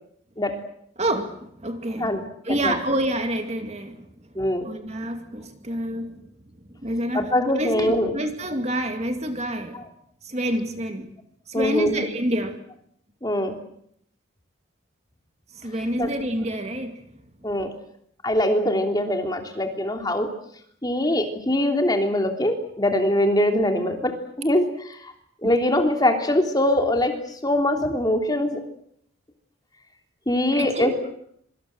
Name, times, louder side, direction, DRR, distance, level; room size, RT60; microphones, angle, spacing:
voice 1, 1.0-4.1 4.6-6.2 6.7-9.9 10.2-11.1 11.5-12.6 15.5-17.0 25.4-25.5 30.5-30.9, right 1 dB, 30° right, 6 dB, 2.4 m, -28 dB
voice 2, 4.3-4.7 7.1-8.1 11.5-12.0 13.2-13.6 16.0-16.1 17.4-17.7 18.2-20.3 20.8-25.1 25.4-28.6 30.3-30.9, left 1 dB, 20° left, 4 dB, 3.3 m, -23 dB
26.0 x 25.0 x 7.8 m, 0.70 s
head